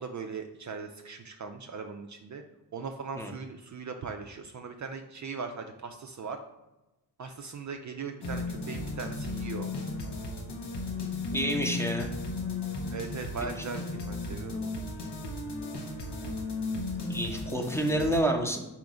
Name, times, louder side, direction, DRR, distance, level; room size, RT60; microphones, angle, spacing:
voice 1, 0.0-2.4 2.7-6.4 7.2-9.7 12.9-14.8, right 5 dB, 45° right, 5 dB, 0.4 m, -39 dB
sound 1, 8.2-18.2, left 3 dB, 80° left, 0.9 m, -35 dB
voice 2, 11.3-12.1 17.1-18.6, right 1 dB, 5° left, 2 dB, 0.8 m, -28 dB
3.8 x 2.9 x 4.8 m, 1.0 s
cardioid pair, 60°, 41 cm